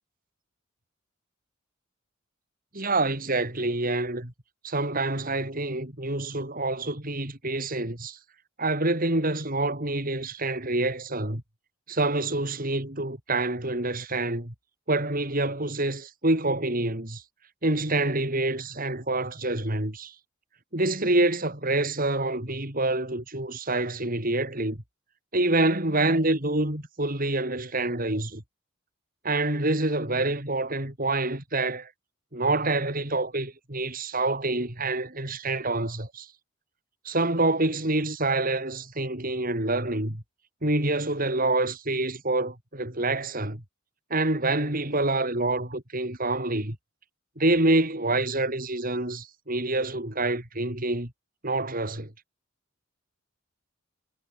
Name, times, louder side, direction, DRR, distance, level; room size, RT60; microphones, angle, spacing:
voice 1, 2.7-4.3 4.6-8.2 8.6-11.4 11.9-14.5 14.9-17.2 17.6-20.1 20.7-24.8 25.3-28.4 29.2-31.9 32.3-36.3 37.0-40.2 40.6-43.6 44.1-46.8 47.4-51.1 51.4-52.1, right 2 dB, 45° right, 4.7 m, -27 dB
head